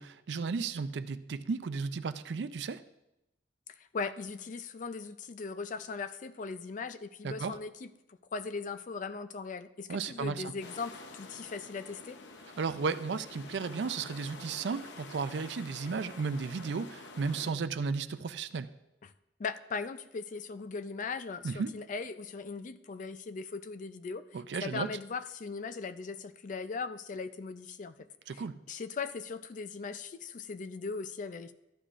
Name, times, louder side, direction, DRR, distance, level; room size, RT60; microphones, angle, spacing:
voice 1, 0.0-2.8 7.2-7.6 9.9-10.5 12.6-18.7 21.4-21.7 24.3-24.9 28.3-28.6, right 5 dB, 75° right, 13 dB, 0.4 m, -34 dB
voice 2, 3.7-7.9 8.3-12.2 19.0-19.1 19.4-24.2 24.6-28.1 28.3-28.4 28.7-31.5, left 4 dB, 45° left, 11 dB, 0.4 m, -39 dB
sound 1, 10.6-17.5, left 3 dB, 90° left, 0.7 m, -48 dB
13.5 x 10.0 x 2.5 m, 0.91 s
head